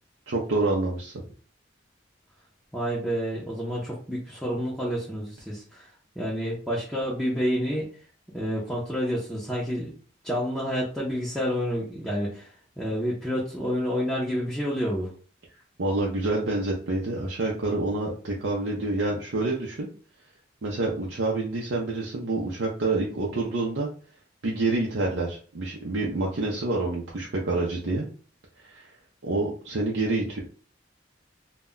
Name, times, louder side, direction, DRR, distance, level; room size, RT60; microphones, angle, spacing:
voice 1, 0.3-1.1 15.8-19.9 20.6-23.9 24.4-28.1 28.6-28.8 29.2-30.4, right 2 dB, 75° right, -3 dB, 0.5 m, -27 dB
voice 2, 2.7-5.9 6.2-7.9 8.3-10.0 10.2-15.1, equal, ahead, -6 dB, 0.5 m, -29 dB
2.1 x 2.1 x 3.7 m, 0.41 s
head